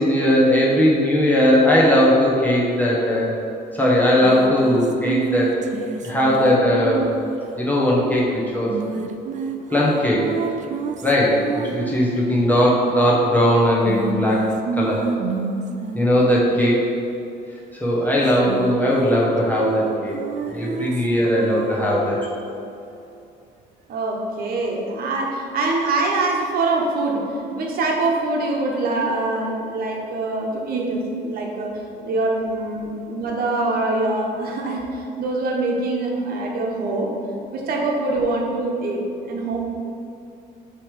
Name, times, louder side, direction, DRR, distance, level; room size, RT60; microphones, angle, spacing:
voice 1, 0.0-3.3 3.7-5.5 6.0-7.1 7.6-9.1 9.7-10.2 11.0-14.5 14.8-15.0 15.9-16.9 17.8-22.3, equal, 10° left, -5 dB, 1.1 m, -18 dB
sound 1, 4.2-7.5 8.7-12.5 13.8-16.9 18.2-19.3 19.6-22.5, right 5 dB, 45° right, 0.5 m, -29 dB
voice 2, 23.9-27.3 27.5-37.1 37.5-39.6, right 2 dB, 60° right, 0 dB, 1.2 m, -24 dB
6.9 x 3.2 x 5.1 m, 2.7 s
cardioid pair, 110°, 17 cm